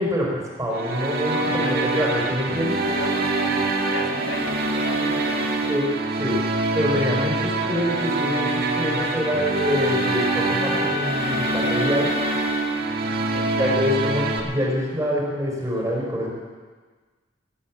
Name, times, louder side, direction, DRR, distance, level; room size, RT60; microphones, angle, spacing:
voice 1, 0.0-2.8 5.7-5.9 6.2-6.4 6.7-12.2 13.6-16.3, equal, 20° right, -2 dB, 4.5 m, -25 dB
sound 1, 0.7-14.4, right 2 dB, 55° right, 1.8 m, -25 dB
voice 2, 1.3-1.9 2.9-5.8 13.0-13.8, left 2 dB, 75° left, 2 dB, 1.9 m, -34 dB
Wind instrument woodwind instrument, 8.9-13.0, left 6 dB, 45° left, 3.1 m, -33 dB
18.5 x 9.6 x 7.4 m, 1.4 s
head